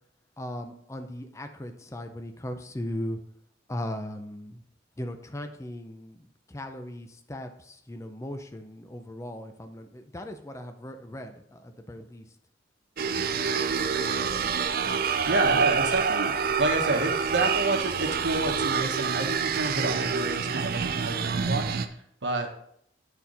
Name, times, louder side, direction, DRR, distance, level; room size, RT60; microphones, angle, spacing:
voice 1, 0.4-3.2 3.7-4.6 5.0-12.3, left 1 dB, 15° left, 7 dB, 0.5 m, -38 dB
sound 1, 13.0-21.9, right 6 dB, 55° right, 0.5 m, -27 dB
voice 2, 15.3-22.5, right 2 dB, 80° right, 3 dB, 1.2 m, -29 dB
9.5 x 4.3 x 4.0 m, 0.68 s
head